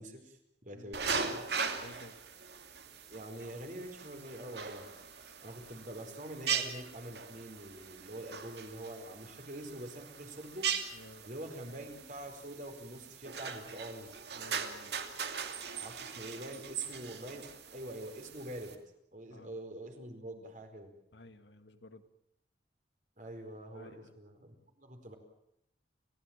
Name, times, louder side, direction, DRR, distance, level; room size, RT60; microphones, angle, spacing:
voice 1, 0.0-1.4 3.1-4.9 5.4-10.7 11.3-14.1 15.8-18.7 19.1-20.9 23.2-25.2, right 1 dB, 45° right, 5 dB, 4.6 m, -45 dB
voice 2, 0.7-1.1 1.8-2.2 10.9-11.3 14.3-15.0 19.3-19.5 21.1-22.0 23.7-24.1, left 2 dB, 70° left, 9 dB, 1.8 m, -53 dB
sound 1, 0.9-18.8, right 6 dB, 60° right, 2.7 m, -40 dB
30.0 x 15.5 x 8.9 m, 0.79 s
head